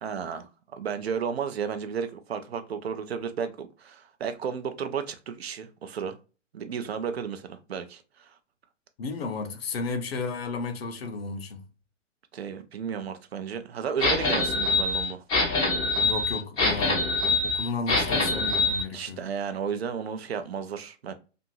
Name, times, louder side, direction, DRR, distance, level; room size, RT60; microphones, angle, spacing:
voice 1, 0.0-6.2 6.5-8.3 12.3-15.2 18.9-21.1, right 7 dB, 55° right, 0.5 m, -33 dB
voice 2, 9.0-11.6 16.0-19.3, left 4 dB, 50° left, 0.6 m, -33 dB
sound 1, 14.0-18.8, left 3 dB, 10° left, 0.5 m, -24 dB
2.6 x 2.4 x 2.7 m
figure-of-eight pair, 120°, 38 cm